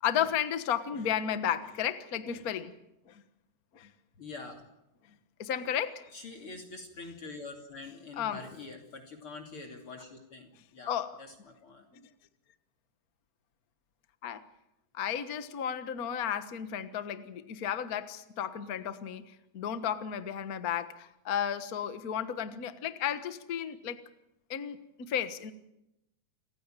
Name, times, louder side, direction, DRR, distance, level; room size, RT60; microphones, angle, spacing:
voice 1, 0.0-2.7 3.1-3.2 3.7-3.9 5.4-6.0 8.2-8.4 10.9-11.1 14.2-14.4 14.9-19.2 19.5-24.0 24.5-25.5, left 9 dB, 55° left, 10 dB, 0.9 m, -33 dB
voice 2, 4.2-4.6 6.1-10.9 11.2-11.9, left 3 dB, 40° left, 3 dB, 3.4 m, -45 dB
29.0 x 16.0 x 9.0 m, 0.88 s
omnidirectional pair, 3.8 m